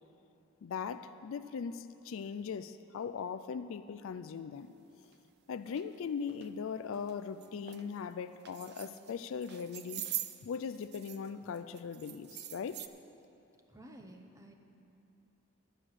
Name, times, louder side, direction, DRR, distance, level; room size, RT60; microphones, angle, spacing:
voice 1, 0.6-4.7 5.5-12.8, left 6 dB, 65° left, 12 dB, 0.4 m, -40 dB
sound 1, 5.0-5.1 5.7-5.8 6.3-6.5 6.9-7.1 7.4-7.8 8.4-9.1 9.4-11.3 11.5-12.9, right 12 dB, 50° right, 0.5 m, -43 dB
voice 2, 13.7-14.5, right 1 dB, 15° right, 3 dB, 0.8 m, -52 dB
12.0 x 7.6 x 6.5 m, 2.9 s
head